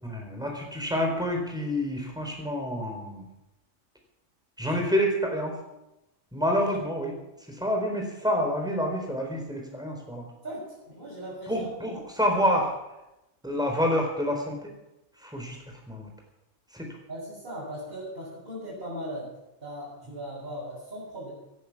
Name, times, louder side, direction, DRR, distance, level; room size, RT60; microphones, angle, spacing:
voice 1, 0.0-3.2 4.6-5.5 6.3-7.1 7.6-10.3 11.5-12.7 13.4-14.6 15.2-15.6 15.9-16.1 16.7-16.9, equal, 5° right, 1 dB, 4.0 m, -28 dB
voice 2, 10.4-11.9 17.1-19.3 19.6-21.3, equal, 40° right, -10 dB, 6.7 m, -38 dB
18.5 x 10.5 x 6.0 m, 0.93 s
omnidirectional pair, 1.4 m